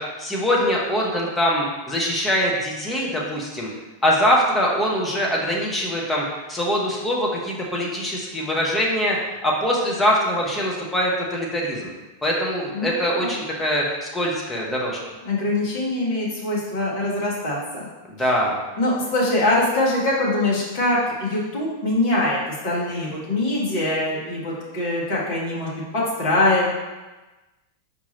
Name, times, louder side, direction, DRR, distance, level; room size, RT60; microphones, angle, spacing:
voice 1, 0.0-3.7 4.0-9.2 9.4-11.9 12.2-15.0 18.1-18.6, equal, 10° left, -3 dB, 1.0 m, -23 dB
voice 2, 12.7-13.3 15.2-17.8 18.8-26.7, left 2 dB, 45° left, -5 dB, 1.5 m, -23 dB
4.4 x 2.8 x 4.1 m, 1.2 s
figure-of-eight pair, 90°, 0 cm